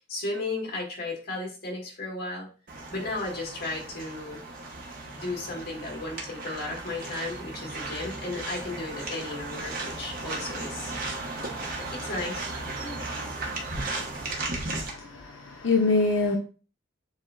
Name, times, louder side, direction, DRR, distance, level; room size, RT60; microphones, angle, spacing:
voice 1, 0.1-2.5 2.9-4.4 5.1-10.9 11.8-12.5 12.8-13.0, left 2 dB, 55° left, -1 dB, 1.8 m, -34 dB
sound 1, 2.7-14.9, right 2 dB, 50° right, 1.0 m, -36 dB
voice 2, 14.7-16.4, left 3 dB, 85° left, 2 dB, 0.6 m, -25 dB
7.2 x 2.7 x 2.4 m, 0.36 s
head